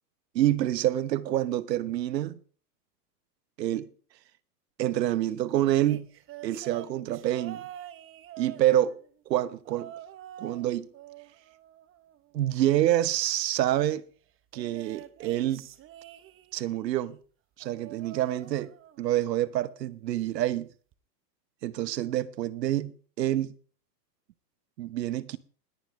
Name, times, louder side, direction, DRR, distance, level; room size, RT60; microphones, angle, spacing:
voice 1, 0.3-2.4 3.6-3.9 4.8-6.1 6.4-7.6 8.4-8.9 9.3-9.9 10.4-10.9 12.3-14.1 14.5-15.7 16.5-17.2 17.6-18.7 19.0-20.7 21.6-23.5 24.8-25.4, right 13 dB, 85° right, 1.2 m, -27 dB
sound 1, 5.8-9.1 9.7-10.7 10.9-12.5 14.5-16.7 17.6-19.1 19.4-19.8 20.9-21.0, right 12 dB, 25° right, 1.0 m, -46 dB
20.0 x 10.5 x 3.3 m
supercardioid pair, 135°, 49 cm